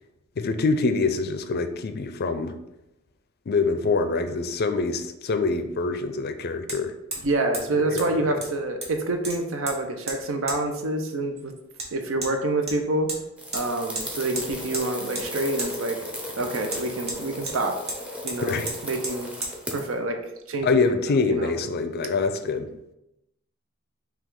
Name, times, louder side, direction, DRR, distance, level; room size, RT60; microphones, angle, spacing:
voice 1, 0.4-2.5 3.5-6.9 7.7-8.4 18.4-18.7 20.6-22.7, left 4 dB, 50° left, 8 dB, 0.4 m, -25 dB
Hammer, 6.7-6.8 7.1-7.3 7.5-7.7 8.0-8.1 8.4-9.0 9.2-9.8 10.1-10.2 10.5-10.6 11.8-11.9 12.2-12.3 12.7-13.2 13.5-13.6 13.9-14.1 14.3-14.9 15.1-15.3 15.6-15.7 16.7-17.6 17.9-18.0 18.3-18.4 18.7-18.8 19.0-19.2 19.4-19.5, right 2 dB, 30° right, 1.1 m, -32 dB
voice 2, 7.2-11.5 11.9-13.1 13.5-16.0 16.4-17.8 18.2-19.3 19.7-20.2 20.5-20.8 21.3-21.5, right 2 dB, 70° right, 5 dB, 0.7 m, -27 dB
sound 1, 13.4-19.9, equal, 5° right, 0.7 m, -36 dB
5.8 x 2.4 x 3.7 m, 0.88 s
head